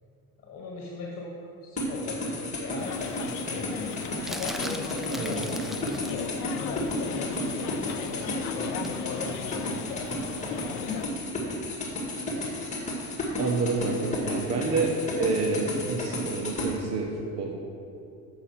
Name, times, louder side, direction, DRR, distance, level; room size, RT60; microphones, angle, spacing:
voice 1, 0.4-3.9 4.1-11.0, left 3 dB, 45° left, -2 dB, 1.4 m, -39 dB
sound 1, 1.8-16.7, left 1 dB, 20° left, 2.0 m, -33 dB
sound 2, 2.8-11.1, left 9 dB, 70° left, 0.7 m, -36 dB
sound 3, 4.3-6.3 8.8-9.0, equal, ahead, 0.3 m, -39 dB
voice 2, 13.4-17.1 17.4-17.5, right 3 dB, 50° right, 0 dB, 1.1 m, -28 dB
8.0 x 6.1 x 5.9 m, 2.6 s
cardioid pair, 125°, 33 cm